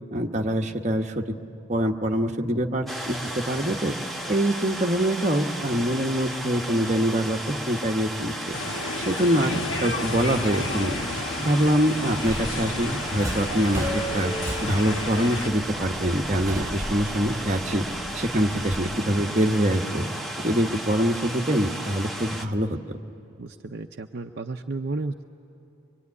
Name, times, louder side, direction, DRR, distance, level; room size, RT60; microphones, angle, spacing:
voice 1, 0.1-1.2 1.7-4.0 4.3-8.6 9.1-11.0 11.4-14.3 14.6-17.8 18.1-20.1 20.4-22.8, equal, 35° right, 2 dB, 1.1 m, -24 dB
sound 1, 2.9-22.5, right 1 dB, ahead, 0.9 m, -34 dB
sound 2, 8.5-15.5, left 3 dB, 90° left, 1.3 m, -33 dB
Subway metro underground, 12.1-18.8, right 1 dB, 15° right, 3.7 m, -34 dB
voice 2, 23.4-25.3, right 3 dB, 55° right, 3 dB, 0.6 m, -33 dB
24.5 x 23.5 x 9.6 m, 2.8 s
head